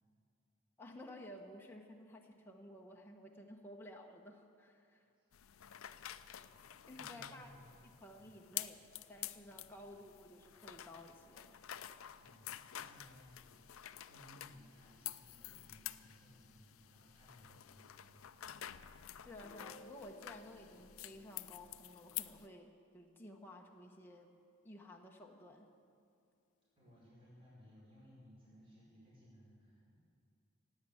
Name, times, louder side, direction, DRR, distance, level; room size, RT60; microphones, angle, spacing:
voice 1, 0.8-5.1 5.8-6.0 6.7-7.5 7.8-8.8 9.1-11.6 19.2-24.3 24.6-25.7, left 1 dB, 10° left, 0 dB, 1.0 m, -54 dB
sound 1, 5.3-22.5, left 13 dB, 85° left, 0.5 m, -49 dB
voice 2, 6.3-7.8 8.1-8.3 12.1-18.5 26.7-29.9, equal, 25° right, -8 dB, 5.0 m, -62 dB
Guitar, 19.3-24.8, equal, 35° left, 0.8 m, -63 dB
16.5 x 9.1 x 8.5 m, 2.5 s
head